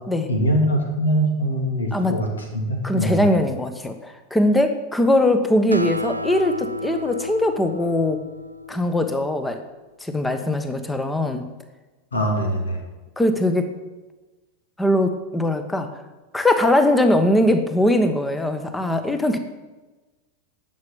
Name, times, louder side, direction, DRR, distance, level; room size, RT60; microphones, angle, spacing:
voice 1, 0.3-2.3 2.5-3.2 12.1-12.8, right 1 dB, 70° left, 2 dB, 2.7 m, -22 dB
voice 2, 1.9-2.2 2.8-8.2 8.7-9.6 10.0-11.5 13.2-13.7 14.8-15.9 16.3-19.4, left 1 dB, 10° left, 8 dB, 1.3 m, -21 dB
Acoustic guitar, 5.7-9.4, left 1 dB, 85° right, 0.6 m, -31 dB
11.0 x 7.5 x 7.1 m, 1.2 s
figure-of-eight pair, 90°, 0 cm